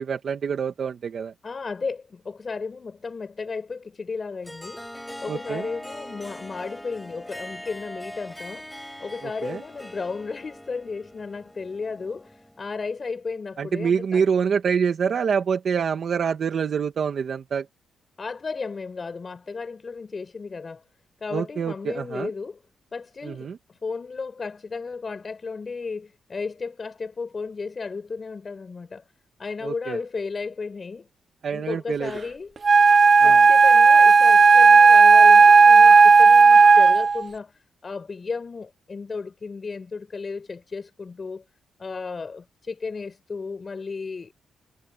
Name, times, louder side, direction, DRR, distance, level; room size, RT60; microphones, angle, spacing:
voice 1, 0.0-1.3 5.3-5.7 9.4-9.6 13.6-17.7 21.3-22.3 23.2-23.6 29.6-30.0 31.4-32.1 33.2-33.5, right 6 dB, 45° right, 2.0 m, -26 dB
voice 2, 1.4-4.8 5.2-8.7 9.0-14.3 18.2-20.8 21.2-22.6 22.9-29.0 29.4-31.1 31.5-32.6 33.2-41.4 41.8-44.3, left 4 dB, 30° left, 5.3 m, -34 dB
Harp, 4.4-12.9, equal, 5° left, 4.9 m, -41 dB
Wind instrument woodwind instrument, 32.6-37.2, right 4 dB, 30° right, 0.5 m, -12 dB
wide cardioid pair, 160°, 0 cm